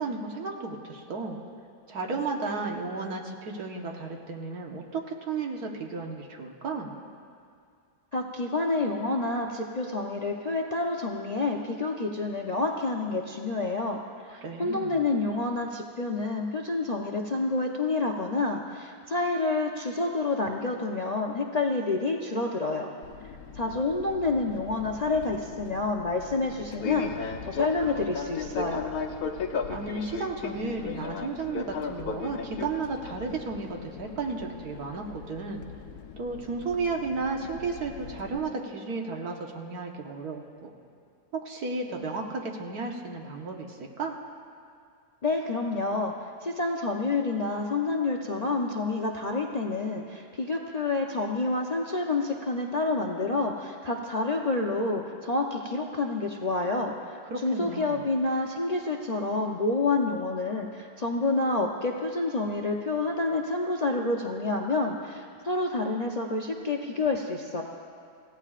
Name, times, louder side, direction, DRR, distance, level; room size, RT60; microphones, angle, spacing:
voice 1, 0.0-1.4 1.9-6.9 14.4-15.0 29.7-35.7 36.2-40.7 41.3-44.2 57.3-58.0, right 4 dB, 75° right, 1 dB, 1.8 m, -33 dB
voice 2, 8.1-14.0 14.3-22.9 23.6-28.9 45.2-46.1 46.4-56.9 57.4-67.6, left 3 dB, 40° left, 1 dB, 0.6 m, -28 dB
Fixed-wing aircraft airplane, 23.0-38.4, left 5 dB, 75° left, 1.3 m, -37 dB
27.5 x 16.0 x 2.5 m, 2.3 s
omnidirectional pair, 1.6 m